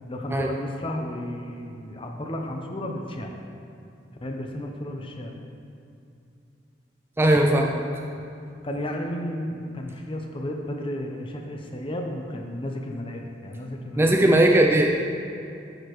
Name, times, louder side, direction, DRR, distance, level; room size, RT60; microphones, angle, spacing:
voice 1, 0.1-3.3 4.2-5.3 7.5-7.7 8.6-14.3, left 1 dB, 30° left, 2 dB, 0.7 m, -33 dB
voice 2, 7.2-7.7 14.0-15.0, right 1 dB, 10° right, 1 dB, 0.3 m, -18 dB
9.9 x 6.4 x 3.1 m, 2.6 s
head